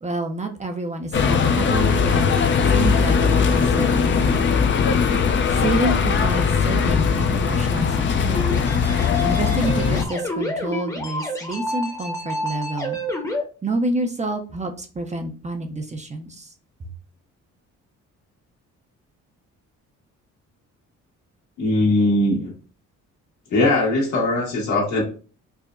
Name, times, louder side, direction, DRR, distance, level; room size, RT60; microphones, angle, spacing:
voice 1, 0.0-2.3 2.7-4.4 5.6-8.7 9.2-13.0 13.6-16.5 16.8-16.9, right 2 dB, 25° right, 5 dB, 0.5 m, -28 dB
sound 1, 1.1-10.0, left 6 dB, 40° left, 0.5 m, -20 dB
sound 2, 8.4-13.4, left 1 dB, 10° left, 0.8 m, -28 dB
voice 2, 21.6-22.5 23.5-25.0, left 2 dB, 75° left, -3 dB, 1.5 m, -20 dB
4.6 x 2.1 x 2.5 m, 0.38 s
cardioid pair, 90°, 30 cm